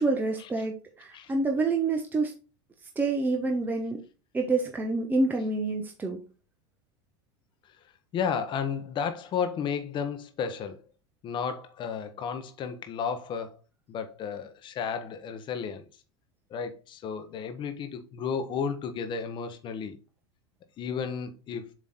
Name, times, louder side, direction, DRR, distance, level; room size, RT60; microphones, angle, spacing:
voice 1, 0.0-2.3 3.0-4.0 4.3-6.2, right 3 dB, 10° right, 0.8 m, -27 dB
voice 2, 8.1-10.8 11.2-13.6 13.9-15.9 16.5-20.0 20.8-21.7, left 6 dB, 35° left, 1.1 m, -33 dB
7.4 x 3.1 x 4.1 m
supercardioid pair, 120°, 15 cm